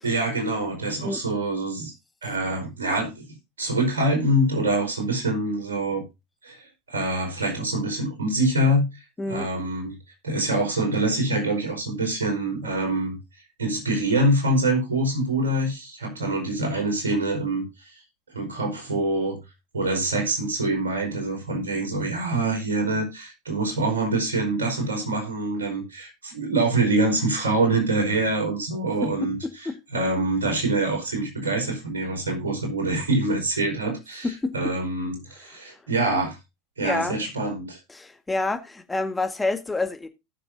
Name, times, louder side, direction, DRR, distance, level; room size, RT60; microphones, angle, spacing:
voice 1, 0.0-1.9 2.2-3.2 3.6-6.0 6.4-6.6 6.9-8.9 9.3-9.9 10.2-13.2 13.6-17.6 18.3-19.4 19.7-29.4 29.9-34.3 34.5-36.4 36.8-37.8, right 2 dB, 80° right, 5.0 m, -25 dB
voice 2, 9.2-9.5 29.0-29.8 34.2-34.7 36.8-37.2 37.9-40.1, left 3 dB, 10° left, 1.9 m, -28 dB
18.5 x 6.8 x 2.8 m
figure-of-eight pair, 80°, 0 cm